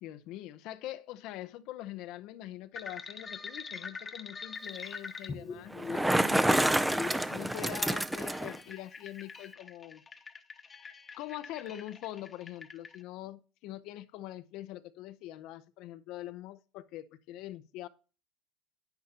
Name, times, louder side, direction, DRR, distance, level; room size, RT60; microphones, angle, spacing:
voice 1, 0.0-10.0 11.2-17.9, left 14 dB, 65° left, 0.6 m, -44 dB
sound 1, 2.8-13.0, left 4 dB, 25° left, 1.0 m, -43 dB
Bicycle, 5.7-8.6, right 1 dB, 5° right, 0.5 m, -28 dB
10.5 x 9.2 x 2.9 m
supercardioid pair, 110°, 0 cm